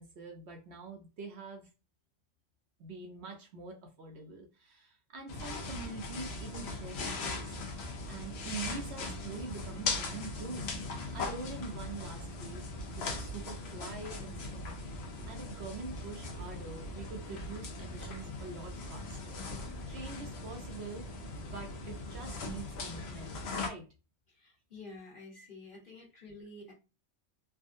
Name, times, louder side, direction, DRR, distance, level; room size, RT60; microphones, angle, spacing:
voice 1, 0.0-1.7 2.8-7.5 8.1-10.7 11.1-12.7 13.0-14.8 15.2-19.4 19.9-21.1 21.3-23.9, right 4 dB, 65° right, 2 dB, 0.9 m, -45 dB
sound 1, 5.3-23.7, left 3 dB, 65° left, 0.9 m, -39 dB
voice 2, 24.3-26.7, left 2 dB, 45° left, -2 dB, 1.4 m, -50 dB
3.5 x 2.1 x 2.5 m, 0.30 s
omnidirectional pair, 1.3 m